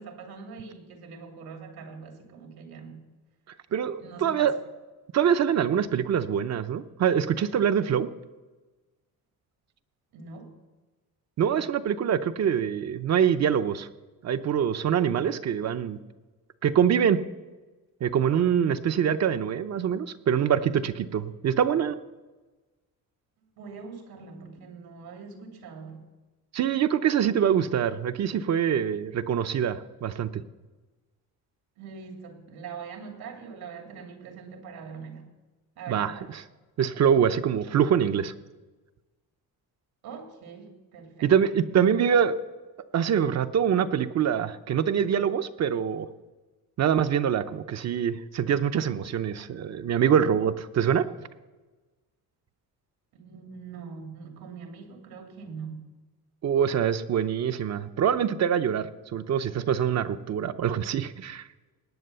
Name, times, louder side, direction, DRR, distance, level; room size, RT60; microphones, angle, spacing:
voice 1, 0.0-3.1 4.0-4.6 10.1-10.5 23.6-26.0 31.8-35.3 35.8-36.3 40.0-41.3 53.1-55.9, right 5 dB, 85° right, 3 dB, 2.8 m, -43 dB
voice 2, 3.7-4.5 5.1-8.1 11.4-13.9 14.2-16.0 16.6-17.2 18.0-22.0 26.5-30.4 35.9-36.1 36.8-38.3 41.2-42.3 42.9-46.1 46.8-51.0 56.4-61.5, right 8 dB, 45° right, 10 dB, 0.7 m, -24 dB
19.0 x 8.9 x 6.8 m, 1.2 s
cardioid pair, 165°, 36 cm